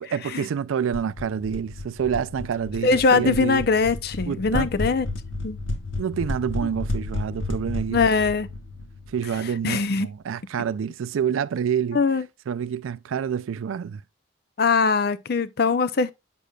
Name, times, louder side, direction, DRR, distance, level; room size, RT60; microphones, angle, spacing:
voice 1, 0.0-3.7 4.3-4.7 6.0-8.0 9.1-12.0 12.5-14.0, right 7 dB, 85° right, 0.4 m, -27 dB
sound 1, 0.9-9.6, left 2 dB, 80° left, 1.1 m, -32 dB
voice 2, 2.8-5.1 5.4-5.6 7.9-8.5 9.6-10.1 11.9-12.2 14.6-16.1, left 4 dB, 50° left, 0.5 m, -21 dB
7.6 x 6.7 x 2.3 m
head